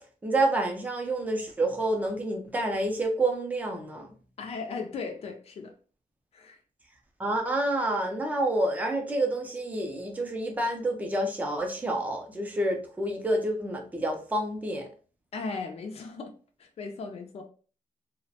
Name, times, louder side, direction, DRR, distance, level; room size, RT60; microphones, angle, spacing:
voice 1, 0.2-4.1 7.2-14.9, right 1 dB, 10° right, 0.5 m, -28 dB
voice 2, 4.4-5.7 6.3-6.6 15.3-16.3 16.6-17.4, left 4 dB, 45° left, 0.4 m, -37 dB
2.3 x 2.1 x 2.7 m
wide cardioid pair, 160°, 14 cm